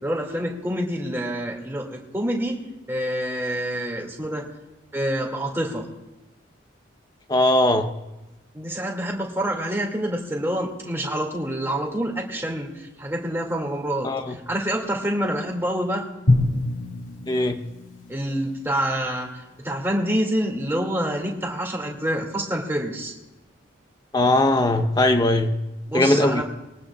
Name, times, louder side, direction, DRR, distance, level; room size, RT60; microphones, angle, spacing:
voice 1, 0.0-4.5 4.9-5.8 8.5-16.0 18.1-23.1 25.9-26.4, equal, 15° right, -1 dB, 2.2 m, -27 dB
voice 2, 7.3-7.9 14.0-14.4 17.3-17.6 24.1-25.5 25.9-26.4, left 1 dB, 20° left, 7 dB, 0.8 m, -19 dB
Drum, 16.3-19.2, left 2 dB, 80° left, 2.1 m, -26 dB
22.0 x 18.5 x 2.4 m, 1.0 s
head